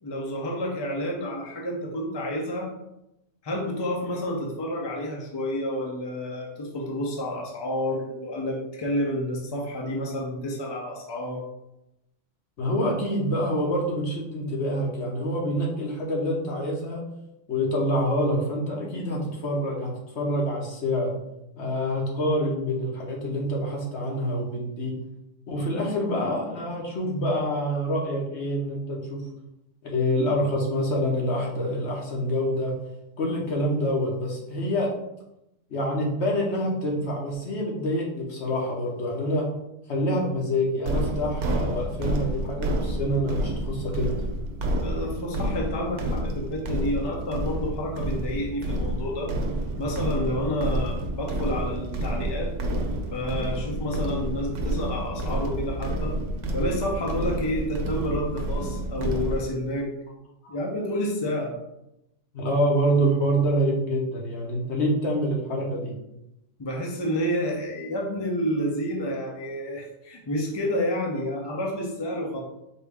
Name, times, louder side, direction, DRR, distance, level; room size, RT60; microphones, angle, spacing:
voice 1, 0.0-2.7 3.4-11.4 44.8-49.3 49.8-52.5 53.1-56.2 56.5-59.9 60.5-61.5 66.6-72.4, equal, 25° left, -1 dB, 0.6 m, -29 dB
voice 2, 12.6-17.0 17.5-21.1 21.6-24.9 25.5-29.2 29.8-32.7 33.2-34.9 35.7-39.5 39.9-44.1 60.4-60.6 62.3-65.9, equal, 70° left, -2 dB, 1.2 m, -26 dB
sound 1, 40.9-59.4, right 1 dB, 80° right, 1.0 m, -29 dB
4.4 x 2.9 x 3.5 m, 0.86 s
omnidirectional pair, 1.2 m